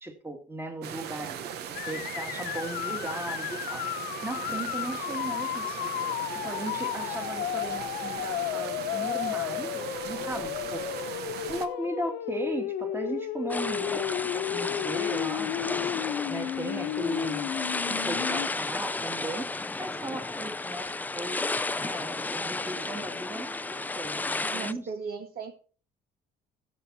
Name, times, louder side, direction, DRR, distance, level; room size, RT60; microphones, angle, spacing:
voice 1, 0.0-3.9 4.2-5.9 6.3-10.8 11.5-15.8 16.3-17.5 17.9-19.5 19.8-21.4 21.8-24.9, right 1 dB, 15° right, 4 dB, 2.2 m, -37 dB
sound 1, 0.8-11.7, right 9 dB, 75° right, 1.1 m, -38 dB
sound 2, 1.7-18.5, left 12 dB, 80° left, 1.1 m, -33 dB
sound 3, 13.5-24.7, left 3 dB, 10° left, 0.4 m, -33 dB
voice 2, 24.4-25.5, right 5 dB, 60° right, 5 dB, 2.0 m, -37 dB
14.5 x 7.4 x 4.3 m, 0.40 s
cardioid pair, 110°, 17 cm